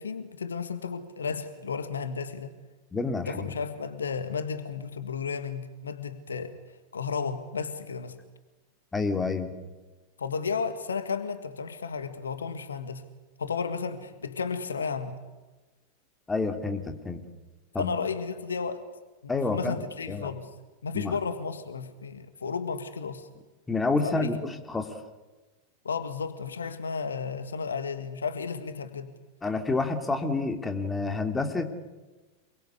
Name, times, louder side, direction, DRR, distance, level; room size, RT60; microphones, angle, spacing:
voice 1, 0.0-2.5 3.3-6.6 6.9-8.2 10.2-13.1 13.4-15.2 17.8-18.9 19.2-20.5 20.8-23.3 24.0-24.4 25.8-29.1, left 5 dB, 70° left, 10 dB, 1.8 m, -33 dB
voice 2, 2.9-3.5 8.9-9.5 16.3-17.2 17.7-17.9 19.3-19.7 20.1-20.3 20.9-21.2 23.7-24.9 29.4-31.7, left 3 dB, 10° left, 6 dB, 2.8 m, -28 dB
27.5 x 23.0 x 8.3 m, 1.2 s
figure-of-eight pair, 90°, 0 cm